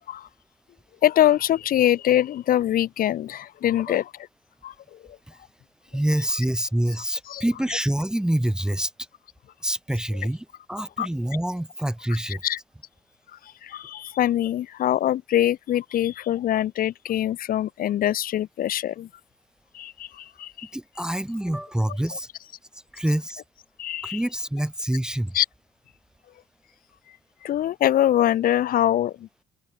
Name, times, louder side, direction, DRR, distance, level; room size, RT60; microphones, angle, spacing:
voice 1, 1.0-4.3 4.6-5.2 6.2-6.3 6.9-7.8 10.1-10.2 10.7-11.1 12.3-12.6 13.3-19.1 19.7-20.7 21.9-22.5 23.8-24.3 25.3-25.5 27.1-27.2 27.4-29.3, left 12 dB, 60° left, 1.1 m, -24 dB
voice 2, 5.9-8.9 9.6-12.4 20.7-22.3 22.7-23.4 24.0-25.3, right 1 dB, 5° right, 0.9 m, -26 dB
open air
cardioid pair, 110°, 17 cm